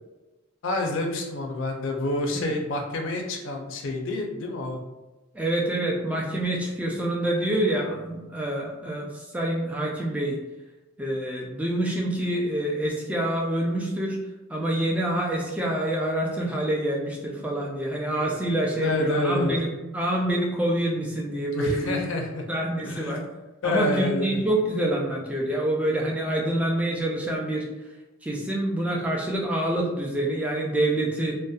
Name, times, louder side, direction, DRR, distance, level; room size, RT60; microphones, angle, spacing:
voice 1, 0.6-4.8 18.2-18.4 18.8-19.5 21.5-22.4 22.8-23.2 23.6-24.4, left 2 dB, 70° left, 2 dB, 0.4 m, -28 dB
voice 2, 5.3-10.4 11.0-14.2 14.5-22.0 22.5-23.2 23.6-27.7 28.2-31.3, right 1 dB, 5° right, -2 dB, 0.3 m, -26 dB
2.6 x 2.1 x 2.3 m, 1.1 s
head